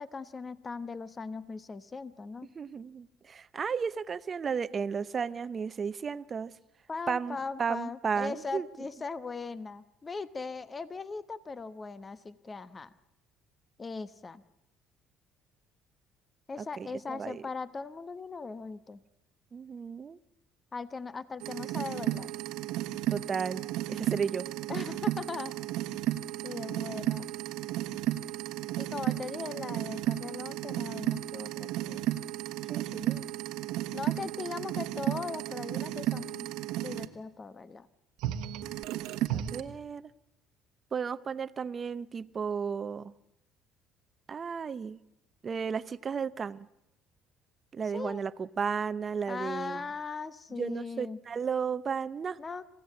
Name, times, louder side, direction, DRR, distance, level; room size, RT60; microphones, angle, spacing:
voice 1, 0.0-2.5 6.9-12.9 13.8-14.4 16.5-19.0 20.7-22.3 24.7-25.5 26.4-27.3 28.8-32.1 33.9-36.5 36.8-37.9 39.6-39.7 47.9-48.2 49.3-51.2 52.4-52.6, left 4 dB, 25° left, 14 dB, 1.0 m, -39 dB
voice 2, 2.5-6.5 7.1-8.7 16.6-17.4 19.5-20.2 23.1-23.6 23.9-24.5 32.7-33.2 34.2-34.3 39.3-40.1 40.9-43.1 44.3-45.0 45.4-46.7 47.7-49.9 50.6-52.4, right 6 dB, 35° right, 15 dB, 0.8 m, -34 dB
sound 1, 21.4-37.1 38.2-39.6, right 14 dB, 80° right, 1.2 m, -34 dB
27.5 x 15.5 x 8.5 m, 0.85 s
cardioid pair, 95°, 0 cm